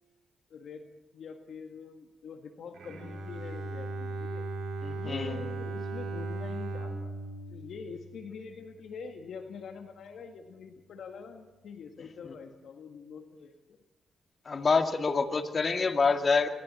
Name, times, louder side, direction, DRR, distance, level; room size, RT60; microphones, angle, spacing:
voice 1, 0.5-0.9 1.1-4.5 4.9-7.2 7.5-13.8, left 5 dB, 70° left, 5 dB, 1.8 m, -45 dB
Bowed string instrument, 2.7-8.7, right 2 dB, 75° right, 4.7 m, -37 dB
voice 2, 4.8-5.5 12.2-12.3 14.5-16.5, left 4 dB, 50° left, 6 dB, 2.3 m, -27 dB
26.5 x 23.0 x 4.3 m, 1.1 s
hypercardioid pair, 45°, 0 cm